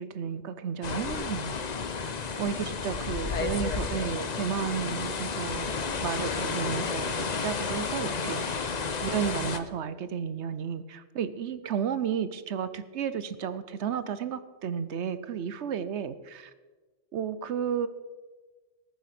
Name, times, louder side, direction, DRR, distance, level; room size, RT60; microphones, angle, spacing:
voice 1, 0.0-1.7 2.0-2.1 2.4-5.7 6.0-8.7 9.0-16.5 17.1-17.9, right 7 dB, 70° right, 13 dB, 1.0 m, -32 dB
sound 1, 0.8-9.6, left 5 dB, 40° left, 0.8 m, -32 dB
19.0 x 7.1 x 5.9 m, 1.3 s
omnidirectional pair, 1.2 m